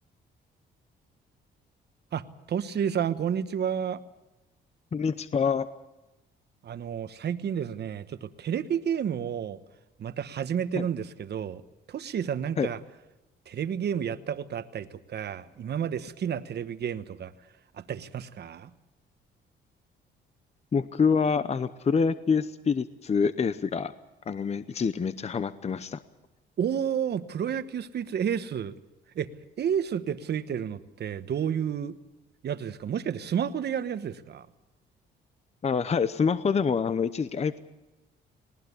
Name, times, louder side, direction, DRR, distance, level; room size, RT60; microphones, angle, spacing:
voice 1, 2.1-4.0 6.6-9.6 10.0-11.6 11.9-12.8 13.5-17.3 17.7-18.7 26.6-28.7 29.1-29.3 29.6-32.0 32.4-34.5, right 8 dB, 55° right, 12 dB, 1.2 m, -31 dB
voice 2, 4.9-5.7 10.7-10.8 12.6-12.7 20.7-23.9 24.3-26.0 35.6-37.6, left 5 dB, 35° left, 13 dB, 0.8 m, -26 dB
20.0 x 18.5 x 8.3 m, 1.0 s
cardioid pair, 90°, 20 cm